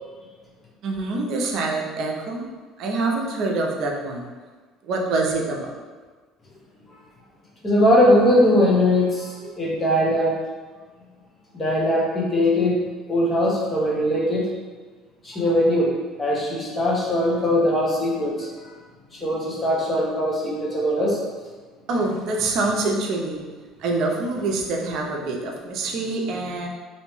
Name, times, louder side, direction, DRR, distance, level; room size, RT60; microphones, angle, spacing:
voice 1, 0.8-2.5 2.8-4.3 4.8-5.7 21.9-23.4 23.8-26.7, right 3 dB, 60° right, 0 dB, 0.5 m, -25 dB
voice 2, 7.6-10.4 11.5-14.5 15.2-15.9 16.2-18.5 19.1-21.3, left 1 dB, 25° left, -4 dB, 0.9 m, -20 dB
2.6 x 2.1 x 3.1 m, 1.4 s
supercardioid pair, 80°, 0 cm